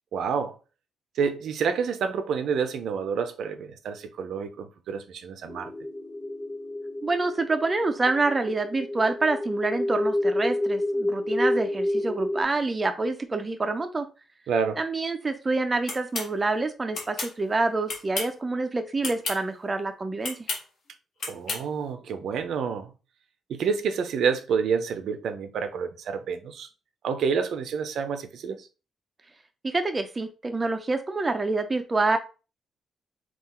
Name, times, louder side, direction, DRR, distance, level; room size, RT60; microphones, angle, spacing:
voice 1, 0.1-0.6 1.2-5.7 14.5-14.8 21.3-22.9 23.5-26.7 27.0-28.7, right 6 dB, 65° right, 0.5 m, -28 dB
sound 1, 5.5-12.4, left 1 dB, 10° left, 1.0 m, -29 dB
voice 2, 7.0-14.1 14.8-20.4 29.6-32.2, right 3 dB, 20° right, 0.4 m, -27 dB
sound 2, 15.9-16.3 16.9-17.3 17.9-18.4 19.0-19.4 20.2-20.6 21.2-21.6, left 3 dB, 55° left, 1.5 m, -31 dB
3.8 x 2.4 x 4.2 m
cardioid pair, 150°, 0 cm